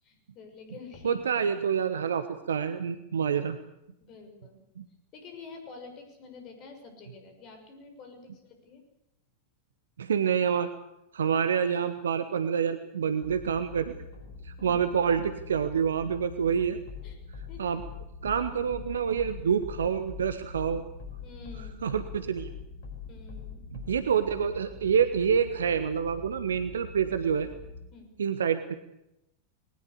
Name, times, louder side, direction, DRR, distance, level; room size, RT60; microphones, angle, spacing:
voice 1, 0.0-1.4 4.0-4.6 5.1-8.8 14.6-14.8 17.0-17.2 17.5-17.7 21.2-21.9 23.1-23.6 27.9-28.1, left 4 dB, 35° left, 5 dB, 6.4 m, -48 dB
voice 2, 1.0-3.6 4.8-4.9 10.0-10.7 11.1-14.0 14.4-16.8 17.6-17.8 18.2-20.8 21.8-22.5 23.7-27.5 28.2-28.7, right 7 dB, 65° right, 11 dB, 1.2 m, -27 dB
sound 1, 13.2-27.9, left 5 dB, 55° left, 5.6 m, -44 dB
21.0 x 19.5 x 8.4 m, 0.87 s
figure-of-eight pair, 90°, 0 cm